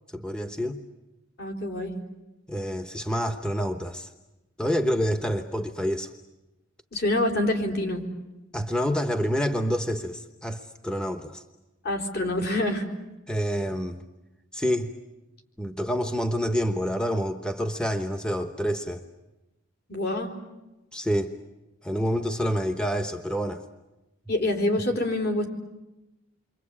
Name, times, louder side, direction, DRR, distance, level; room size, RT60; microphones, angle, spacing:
voice 1, 0.1-0.8 2.5-4.1 4.6-6.1 8.5-11.4 13.3-14.0 14.5-14.9 15.6-19.0 20.9-21.3 21.8-23.6, equal, 5° left, 6 dB, 1.0 m, -27 dB
voice 2, 1.4-1.9 6.9-8.0 11.8-12.9 19.9-20.3 24.3-25.5, left 1 dB, 50° left, 3 dB, 4.3 m, -26 dB
29.0 x 24.0 x 8.6 m, 1.0 s
head